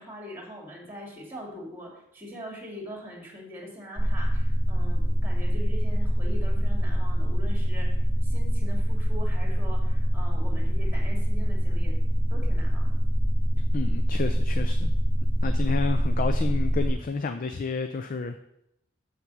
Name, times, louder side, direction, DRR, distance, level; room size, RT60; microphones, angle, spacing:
voice 1, 0.0-7.9 8.2-12.0 12.3-12.9, equal, 10° right, -1 dB, 2.1 m, -42 dB
sound 1, 4.0-16.9, equal, 10° left, 1.2 m, -24 dB
voice 2, 13.7-14.9 15.4-18.4, left 4 dB, 40° left, 8 dB, 0.4 m, -30 dB
7.2 x 5.9 x 6.1 m, 0.81 s
head